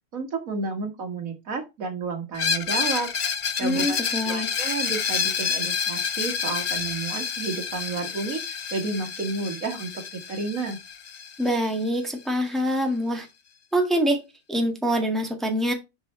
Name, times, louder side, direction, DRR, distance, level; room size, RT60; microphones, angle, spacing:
voice 1, 0.1-3.1 3.6-4.0 4.3-10.8, right 4 dB, 65° right, 6 dB, 1.9 m, -31 dB
Screech, 2.3-12.0, left 6 dB, 60° left, 0.4 m, -29 dB
voice 2, 3.6-4.5 11.4-13.3 13.7-14.2 14.5-15.7, equal, ahead, 3 dB, 1.7 m, -25 dB
7.1 x 5.5 x 3.1 m, 0.24 s
omnidirectional pair, 1.6 m